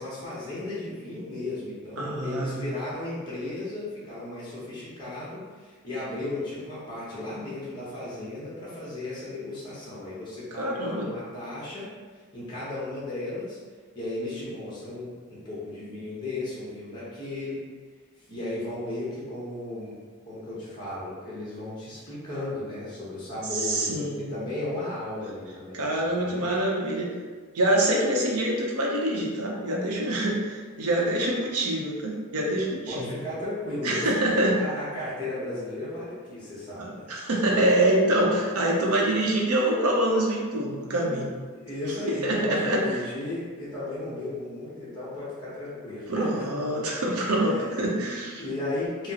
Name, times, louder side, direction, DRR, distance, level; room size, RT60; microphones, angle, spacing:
voice 1, 0.0-11.9 12.1-13.6 13.9-17.6 18.2-26.4 32.9-34.3 34.5-37.1 41.5-46.3 47.2-47.9 48.4-49.1, left 2 dB, 20° left, -9 dB, 1.0 m, -35 dB
voice 2, 2.0-2.6 10.6-11.1 23.5-24.3 25.7-27.1 27.5-33.1 33.8-34.6 36.8-41.3 42.0-42.8 46.1-48.4, right 1 dB, 90° right, -2 dB, 0.7 m, -25 dB
4.7 x 2.0 x 2.8 m, 1.5 s
head